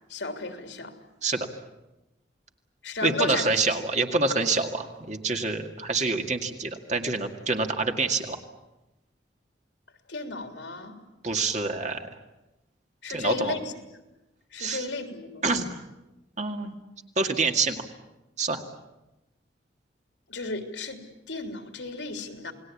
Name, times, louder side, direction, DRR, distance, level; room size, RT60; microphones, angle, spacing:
voice 1, 0.1-0.9 2.8-3.5 10.1-11.0 13.0-13.6 14.5-15.7 20.3-21.0 21.3-22.5, left 3 dB, 85° left, 6 dB, 3.4 m, -34 dB
voice 2, 3.0-8.4 11.2-12.1 13.1-13.6 14.6-14.8 15.4-15.7 16.4-16.8 17.2-17.8 18.4-18.6, right 3 dB, 40° right, 5 dB, 2.1 m, -26 dB
29.0 x 19.5 x 8.5 m, 0.99 s
head